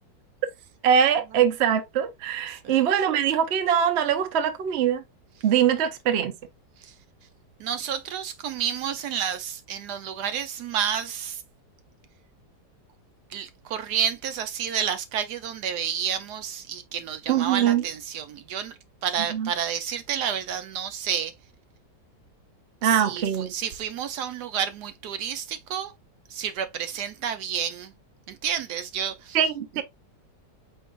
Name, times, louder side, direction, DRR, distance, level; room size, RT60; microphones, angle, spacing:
voice 1, 0.8-5.0 5.4-6.3 17.3-17.8 19.3-19.5 22.8-23.5 29.3-29.8, right 8 dB, 50° right, 0.8 m, -22 dB
voice 2, 7.6-11.4 13.3-21.3 22.8-25.9 26.3-27.9 28.3-29.4 29.8-29.9, right 8 dB, 75° right, 1.1 m, -30 dB
4.6 x 4.5 x 2.4 m
omnidirectional pair, 1.8 m